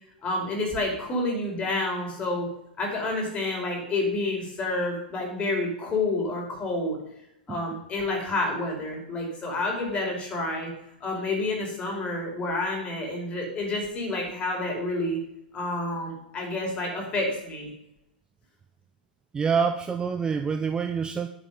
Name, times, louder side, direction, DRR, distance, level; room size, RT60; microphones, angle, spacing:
voice 1, 0.2-2.5 2.8-7.0 7.5-10.7 11.0-15.2 15.5-17.7, left 2 dB, 20° left, 0 dB, 4.8 m, -29 dB
voice 2, 19.3-21.3, right 6 dB, 15° right, 7 dB, 0.7 m, -26 dB
10.5 x 7.8 x 5.4 m, 0.82 s
figure-of-eight pair, 105°, 5 cm